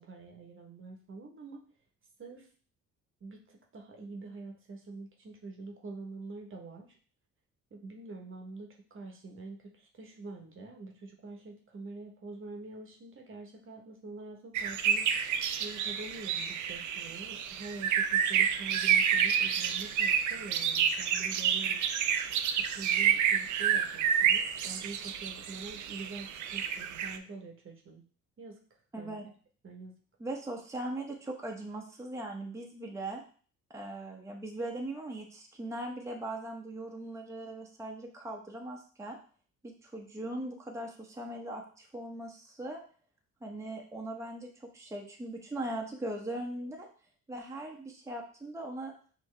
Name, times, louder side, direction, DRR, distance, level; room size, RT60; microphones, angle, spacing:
voice 1, 0.0-1.7 2.2-2.5 3.2-7.0 7.7-15.1 15.6-21.8 22.6-28.1 28.4-28.6 29.0-29.2 29.6-30.0, right 3 dB, 45° right, 2 dB, 1.0 m, -45 dB
sound 1, 14.5-27.2, right 8 dB, 75° right, 0.5 m, -29 dB
voice 2, 28.9-29.3 30.2-33.2 33.7-39.2 39.6-42.8 43.4-44.5 44.7-46.9 47.3-48.9, right 1 dB, 10° right, 0 dB, 0.8 m, -39 dB
5.4 x 2.7 x 3.3 m, 0.43 s
cardioid pair, 90°, 30 cm